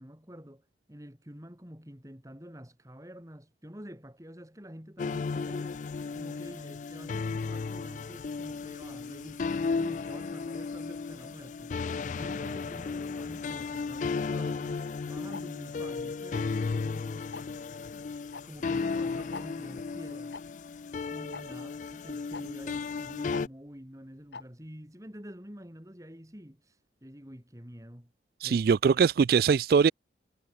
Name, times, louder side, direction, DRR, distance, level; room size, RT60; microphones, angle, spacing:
voice 1, 0.0-5.8 6.1-17.4 18.4-20.4 21.1-28.1 28.4-28.7, equal, 20° right, 3.2 m, -48 dB
sound 1, 5.0-23.5, left 4 dB, 45° left, 0.3 m, -34 dB
Tick-tock, 15.3-15.4 16.3-16.6 17.3-17.6 18.3-18.4 18.7-18.8 19.3-19.5 20.3-20.4 21.3-21.4 22.3-22.4 23.3-23.4 24.3-24.4, left 4 dB, 80° left, 1.2 m, -40 dB
voice 2, 28.4-29.9, right 6 dB, 55° right, 0.3 m, -22 dB
head